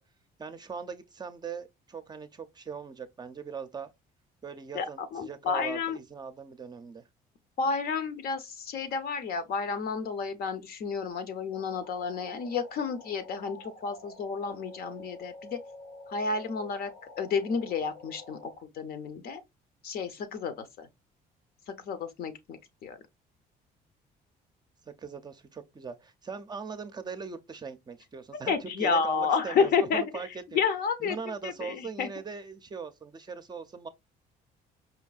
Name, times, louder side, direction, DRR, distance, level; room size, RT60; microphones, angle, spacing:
voice 1, 0.4-3.9 4.4-7.1 24.9-30.6 31.0-33.9, right 5 dB, 25° right, 0.5 m, -40 dB
voice 2, 4.7-6.0 7.6-15.6 16.1-16.9 17.2-19.4 19.8-20.9 21.9-23.0 28.5-30.0 30.5-31.2 31.4-32.1, left 5 dB, 65° left, 0.8 m, -30 dB
sound 1, 11.5-18.6, left 2 dB, 80° left, 1.1 m, -48 dB
5.1 x 2.6 x 2.4 m
cardioid pair, 110°, 17 cm